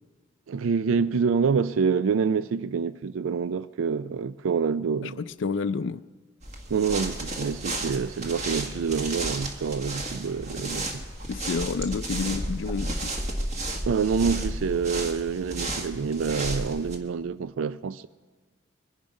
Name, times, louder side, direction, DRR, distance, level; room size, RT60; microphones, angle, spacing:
voice 1, 0.5-5.2 6.7-11.0 13.8-18.1, right 5 dB, 80° right, 0.4 m, -27 dB
voice 2, 5.0-6.0 11.3-13.1, left 5 dB, 65° left, 0.4 m, -29 dB
sound 1, 6.4-17.0, right 1 dB, 35° right, 1.6 m, -33 dB
23.5 x 10.5 x 5.3 m
head